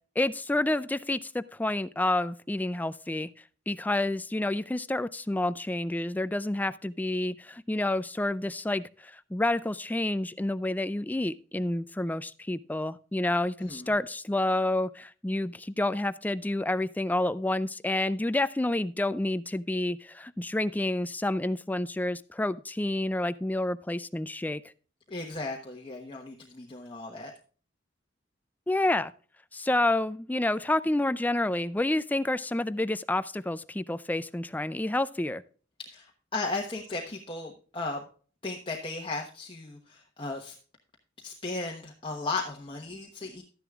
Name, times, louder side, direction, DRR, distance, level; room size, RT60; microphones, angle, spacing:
voice 1, 0.2-3.3 3.7-24.6 28.7-29.1 29.5-35.4, left 1 dB, 10° left, 15 dB, 0.3 m, -29 dB
voice 2, 13.6-13.9 25.1-27.3 35.8-38.0 38.4-40.6 41.2-43.4, left 3 dB, 25° left, 0 dB, 1.1 m, -36 dB
12.5 x 10.0 x 2.4 m, 0.40 s
head